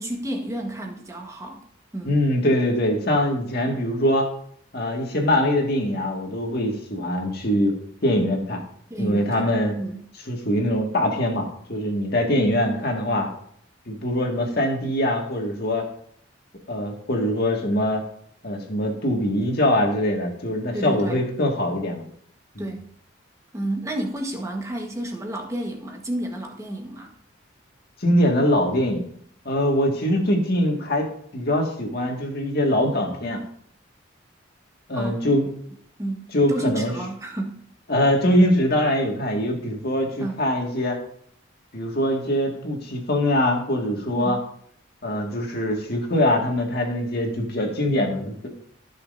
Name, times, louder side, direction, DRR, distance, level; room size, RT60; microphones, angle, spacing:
voice 1, 0.0-1.6 1.9-2.2 8.9-10.0 20.7-21.2 22.6-22.9 23.5-27.2 34.9-35.2 35.4-35.5 36.0-37.6 40.2-40.4 44.1-44.5, right 1 dB, 15° right, 2 dB, 1.4 m, -31 dB
voice 2, 2.0-4.3 4.7-7.8 8.0-8.6 9.0-9.8 10.3-13.3 13.9-15.9 16.7-18.0 18.4-22.0 22.6-22.7 28.0-29.1 29.5-31.1 31.3-33.4 34.9-35.5 36.3-36.9 37.9-41.0 41.7-44.4 45.0-48.5, left 1 dB, 50° left, 1 dB, 1.9 m, -23 dB
14.5 x 6.4 x 2.7 m, 0.64 s
head